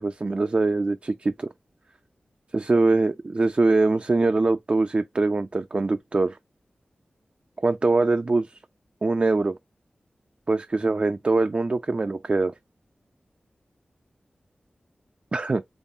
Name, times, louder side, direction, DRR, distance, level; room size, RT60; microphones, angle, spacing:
voice 1, 0.0-1.5 2.5-6.4 7.6-8.6 9.0-9.6 10.5-12.5 15.3-15.6, right 3 dB, 40° right, 0.4 m, -23 dB
5.3 x 2.0 x 2.5 m
wide cardioid pair, 55°, 3 cm